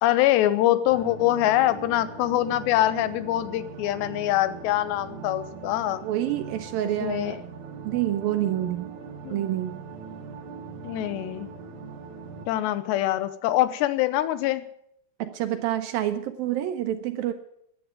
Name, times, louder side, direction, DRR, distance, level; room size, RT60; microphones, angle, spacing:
voice 1, 0.0-6.0 7.0-7.4 9.2-9.4 10.8-11.5 12.5-14.6, left 14 dB, 85° left, 14 dB, 3.1 m, -24 dB
sound 1, 0.9-12.5, right 5 dB, 55° right, 2.5 m, -41 dB
voice 2, 6.0-7.4 7.9-8.9 9.3-9.8 15.2-17.3, right 12 dB, 75° right, 8 dB, 2.4 m, -27 dB
14.0 x 10.0 x 9.0 m, 0.71 s
omnidirectional pair, 4.8 m